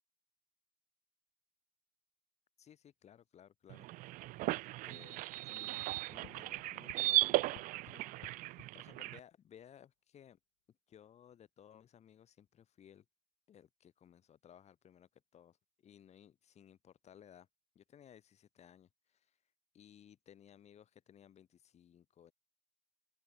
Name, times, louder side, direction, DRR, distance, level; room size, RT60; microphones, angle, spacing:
voice 1, 2.6-8.1 8.4-10.4 10.7-13.1 13.5-17.5 17.8-22.3, left 9 dB, 40° left, 6.8 m, -60 dB
sound 1, 3.7-9.2, right 19 dB, 50° right, 0.5 m, -36 dB
sound 2, 5.9-8.7, left 32 dB, 70° left, 1.0 m, -56 dB
open air
supercardioid pair, 100°, 18 cm